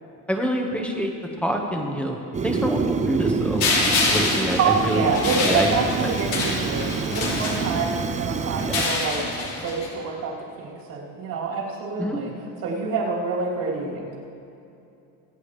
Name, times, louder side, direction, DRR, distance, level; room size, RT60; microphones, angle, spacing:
voice 1, 0.3-1.1 1.4-2.2 2.4-3.7 4.1-5.7 6.0-6.1 8.6-8.8 12.0-12.2, equal, 5° left, 1 dB, 1.5 m, -26 dB
Fire, 2.3-9.0, right 5 dB, 20° right, 0.4 m, -28 dB
sound 1, 3.6-8.1 8.6-9.9, left 3 dB, 75° left, 3.1 m, -26 dB
voice 2, 4.6-9.2 9.6-12.3 12.6-14.2, right 4 dB, 65° right, -3 dB, 3.3 m, -26 dB
25.0 x 8.3 x 3.3 m, 2.7 s
cardioid pair, 120°, 36 cm